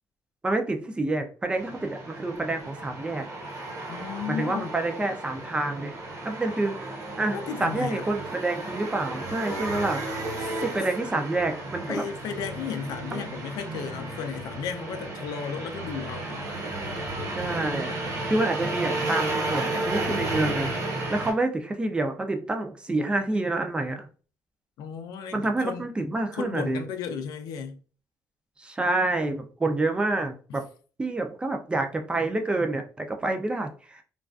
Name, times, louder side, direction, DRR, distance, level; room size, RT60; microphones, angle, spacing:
voice 1, 0.4-3.3 4.3-6.0 6.2-6.8 7.2-10.0 10.6-12.0 13.1-13.3 17.3-18.0 18.3-20.7 21.1-24.1 25.3-26.8 28.6-30.6 31.0-34.0, right 2 dB, 15° right, 0.3 m, -28 dB
sound 1, 1.5-21.3, right 2 dB, 60° right, 1.0 m, -33 dB
voice 2, 3.9-4.7 7.3-8.1 11.9-16.5 24.8-25.9 26.4-27.8 30.5-30.6, left 7 dB, 80° left, 0.4 m, -34 dB
2.3 x 2.3 x 2.3 m
cardioid pair, 125°, 6 cm